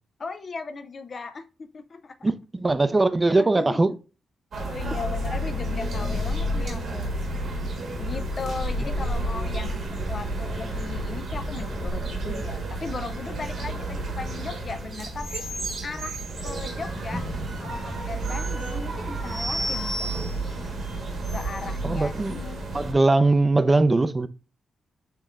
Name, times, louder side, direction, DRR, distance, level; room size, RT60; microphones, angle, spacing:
voice 1, 0.2-2.3 3.3-3.8 4.6-7.1 8.0-15.5 15.8-16.2 16.4-17.3 17.6-20.1 21.3-22.6, left 4 dB, 50° left, 0.5 m, -37 dB
voice 2, 2.2-3.9 21.8-22.4 22.7-24.3, right 2 dB, 30° right, 0.5 m, -21 dB
sound 1, 4.5-22.9, right 1 dB, 70° right, 1.3 m, -31 dB
sound 2, 15.1-21.8, right 1 dB, 90° right, 1.9 m, -35 dB
6.5 x 3.0 x 2.4 m
supercardioid pair, 55°, 0 cm